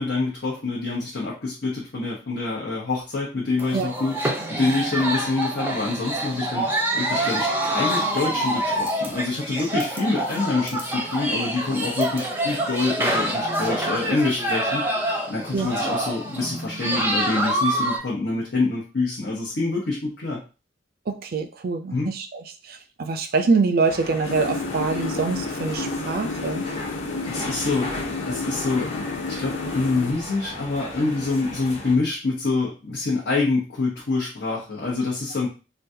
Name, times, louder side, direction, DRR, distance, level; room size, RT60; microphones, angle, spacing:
voice 1, 0.0-4.2 4.5-6.7 6.9-20.4 21.9-22.1 27.2-27.9 28.2-28.9 29.3-35.5, left 3 dB, 65° left, -5 dB, 0.9 m, -26 dB
sound 1, 3.6-18.0, right 1 dB, 10° right, 0.6 m, -26 dB
voice 2, 21.1-26.6, right 4 dB, 55° right, 7 dB, 0.4 m, -25 dB
sound 2, 23.8-32.0, left 2 dB, 35° left, 0.9 m, -36 dB
sound 3, 24.2-30.1, left 3 dB, 80° left, 0.4 m, -31 dB
3.8 x 2.3 x 2.7 m, 0.32 s
head